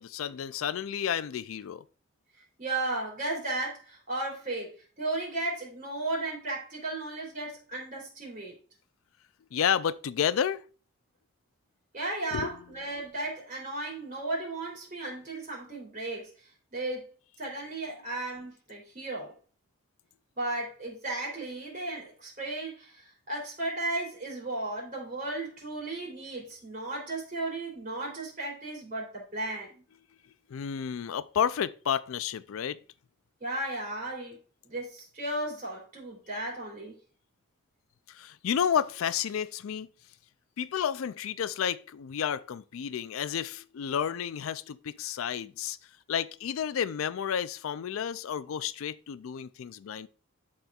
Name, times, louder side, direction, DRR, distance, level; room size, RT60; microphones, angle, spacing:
voice 1, 0.0-1.8 9.5-10.6 12.3-12.5 30.5-32.8 38.1-39.9 40.6-45.8 46.1-50.1, left 8 dB, 75° left, 0.4 m, -31 dB
voice 2, 2.6-4.7 5.0-8.5 11.9-16.3 16.7-17.0 17.4-19.3 20.4-29.8 33.4-34.4 34.6-36.9, right 2 dB, 40° right, 3.1 m, -35 dB
11.5 x 4.3 x 2.4 m
head